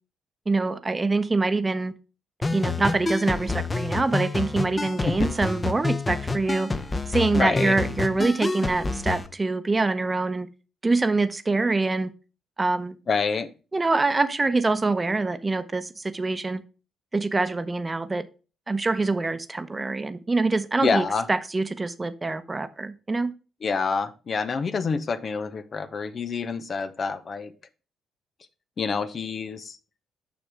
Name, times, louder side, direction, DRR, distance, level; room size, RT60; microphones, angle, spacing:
voice 1, 0.5-1.9 2.5-6.7 7.1-10.5 10.8-12.1 12.6-13.0 13.7-16.6 17.1-18.2 18.7-23.3, right 3 dB, 25° right, 12 dB, 0.9 m, -25 dB
sound 1, 2.4-9.3, left 3 dB, 30° left, 1.0 m, -28 dB
voice 2, 7.3-7.8 13.1-13.5 20.8-21.3 23.6-27.5 28.8-29.8, left 5 dB, 50° left, 10 dB, 0.8 m, -27 dB
6.3 x 6.1 x 3.5 m, 0.33 s
hypercardioid pair, 50°, 0 cm